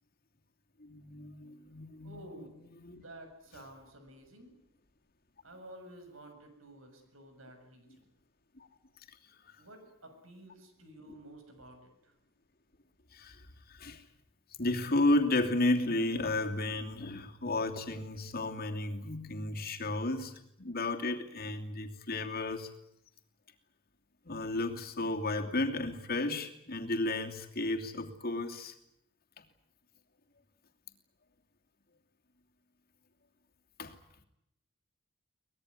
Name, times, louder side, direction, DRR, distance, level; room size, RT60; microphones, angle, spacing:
voice 1, 0.8-2.2 2.8-3.0 8.6-8.7 9.1-9.2 9.5-9.6 13.1-14.0 14.6-22.7 24.2-28.7 33.8-34.0, left 2 dB, 50° left, 2.8 m, -33 dB
voice 2, 2.0-2.6 2.9-4.6 5.4-8.1 9.6-12.1, right 1 dB, 80° right, 7.3 m, -52 dB
24.0 x 20.5 x 9.8 m
head